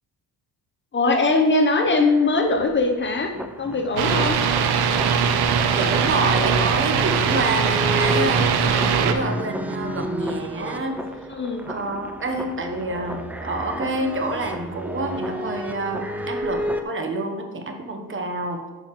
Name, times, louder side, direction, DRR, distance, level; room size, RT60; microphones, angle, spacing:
voice 1, 0.9-3.3 3.6-4.4 11.3-11.7, left 3 dB, 30° left, 4 dB, 0.7 m, -21 dB
sound 1, 1.8-16.8, equal, 5° right, 0.3 m, -32 dB
sound 2, 4.0-9.1, right 6 dB, 85° right, 0.7 m, -21 dB
voice 2, 5.7-11.3 11.6-18.6, right 2 dB, 30° right, 5 dB, 0.9 m, -28 dB
8.7 x 5.6 x 3.0 m, 1.2 s
cardioid pair, 115°, 38 cm